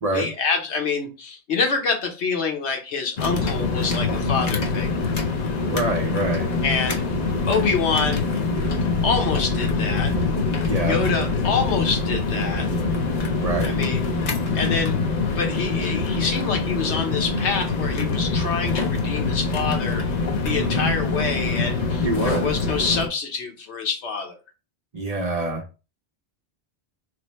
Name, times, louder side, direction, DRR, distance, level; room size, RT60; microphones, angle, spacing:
voice 1, 0.1-4.9 6.6-7.0 7.5-8.3 9.0-10.1 10.9-12.7 13.7-14.1 14.5-15.0 15.4-20.0 20.4-24.4, left 5 dB, 85° left, 4 dB, 1.1 m, -26 dB
sound 1, 3.2-23.1, left 3 dB, 50° left, 0.6 m, -24 dB
voice 2, 5.7-6.5 10.7-11.0 13.4-13.7 20.4-20.9 22.0-22.5 24.9-25.6, right 1 dB, 45° right, 3 dB, 0.6 m, -25 dB
3.2 x 2.0 x 4.1 m, 0.31 s
omnidirectional pair, 1.1 m